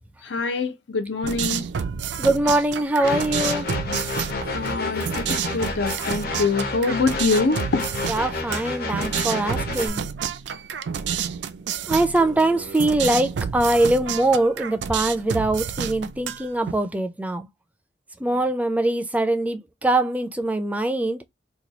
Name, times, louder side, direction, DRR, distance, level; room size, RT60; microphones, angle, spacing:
voice 1, 0.2-1.6 4.5-7.9, left 4 dB, 90° left, 0.6 m, -24 dB
sound 1, 1.2-16.7, right 7 dB, 75° right, 0.4 m, -30 dB
voice 2, 2.2-3.7 8.1-10.0 11.9-17.5 18.2-21.2, right 2 dB, 10° right, 0.4 m, -22 dB
sound 2, 3.0-9.9, left 3 dB, 55° left, 0.8 m, -30 dB
3.0 x 2.3 x 4.0 m
head